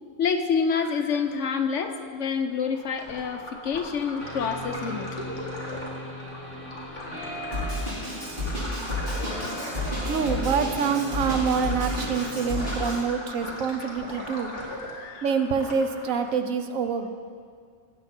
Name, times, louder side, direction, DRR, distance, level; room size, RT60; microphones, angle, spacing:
voice 1, 0.2-5.5 6.7-7.0 7.4-7.5 8.4-9.4 9.9-10.1 14.6-15.3, left 6 dB, 70° left, 6 dB, 1.1 m, -29 dB
sound 1, 2.6-16.4, left 1 dB, 35° left, 2.1 m, -38 dB
sound 2, 4.2-12.8, right 1 dB, 60° right, 2.8 m, -38 dB
Drum kit, 7.5-12.9, left 1 dB, 40° right, 4.2 m, -31 dB
voice 2, 10.0-14.5 15.2-17.1, right 6 dB, 80° right, 8 dB, 1.2 m, -26 dB
18.0 x 7.9 x 4.4 m, 2.1 s
omnidirectional pair, 1.4 m